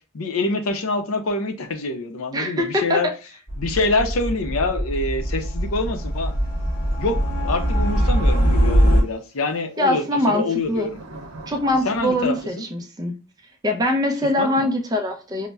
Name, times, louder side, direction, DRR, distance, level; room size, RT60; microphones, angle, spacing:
voice 1, 0.1-3.1 3.6-6.3 7.0-11.0 11.8-12.6 14.4-14.7, left 3 dB, 70° left, 0.6 m, -25 dB
voice 2, 2.3-3.1 9.8-10.9 11.5-13.1 13.6-15.5, left 1 dB, 20° right, 0.4 m, -23 dB
sound 1, 3.5-9.0, equal, 25° left, 0.8 m, -21 dB
sound 2, 7.7-7.8 9.9-12.4, right 2 dB, 90° right, 0.7 m, -41 dB
5.3 x 2.1 x 2.2 m
head